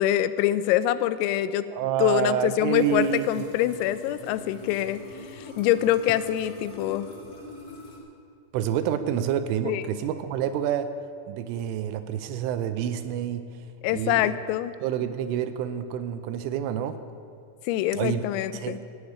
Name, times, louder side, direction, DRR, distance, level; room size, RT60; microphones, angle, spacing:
voice 1, 0.0-1.7 2.0-5.0 5.3-7.1 9.7-9.8 13.8-14.7 17.7-18.8, left 13 dB, 90° left, 13 dB, 3.3 m, -25 dB
voice 2, 1.7-3.4 8.5-10.9 11.3-13.5 13.9-14.4 14.8-17.0 17.9-18.2 18.5-18.8, right 9 dB, 85° right, 10 dB, 3.0 m, -28 dB
sound 1, 2.7-8.0, left 2 dB, 35° left, 1.6 m, -44 dB
16.0 x 8.0 x 9.5 m, 2.4 s
omnidirectional pair, 5.9 m